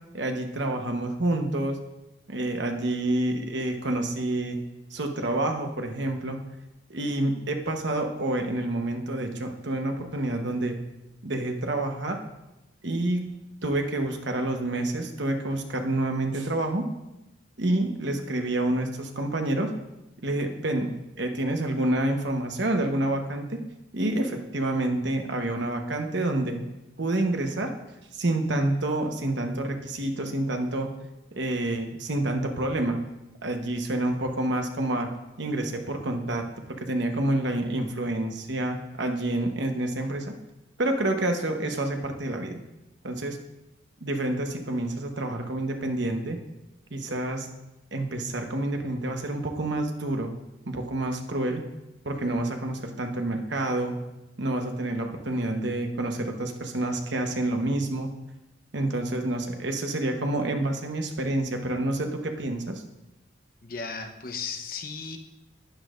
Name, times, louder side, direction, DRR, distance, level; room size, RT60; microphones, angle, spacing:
voice 1, 0.1-1.8 2.3-4.6 4.9-6.4 6.9-10.8 11.2-12.2 12.8-16.9 17.6-19.7 20.2-20.9 21.2-23.6 23.9-26.6 27.0-27.7 28.1-30.9 31.3-33.0 33.4-35.1 35.4-40.3 40.8-42.6 43.0-43.4 44.0-46.4 46.9-47.5 47.9-50.3 50.7-51.6 52.0-54.0 54.4-58.1 58.7-62.8, right 1 dB, 65° right, 4 dB, 1.1 m, -28 dB
voice 2, 63.6-65.2, left 5 dB, 45° left, 5 dB, 0.9 m, -35 dB
11.5 x 9.8 x 2.5 m, 0.96 s
head